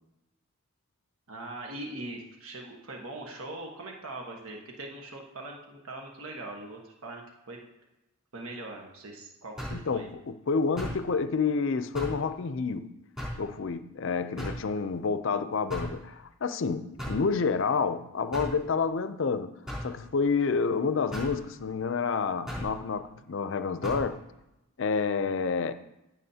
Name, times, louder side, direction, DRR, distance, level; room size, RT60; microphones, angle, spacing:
voice 1, 1.3-7.6 8.3-10.1, right 2 dB, 75° right, 1.3 m, -41 dB
sound 1, 9.6-9.9 10.8-11.0 11.9-12.2 13.2-13.4 14.4-14.7 15.7-16.0 17.0-17.3 18.3-18.6 19.7-19.9 21.1-21.4 22.5-22.7 23.8-24.1, equal, ahead, 3.5 m, -35 dB
voice 2, 9.7-12.9 13.4-16.0 16.4-24.2 24.8-25.7, left 5 dB, 60° left, 0.5 m, -29 dB
14.5 x 7.3 x 2.8 m
head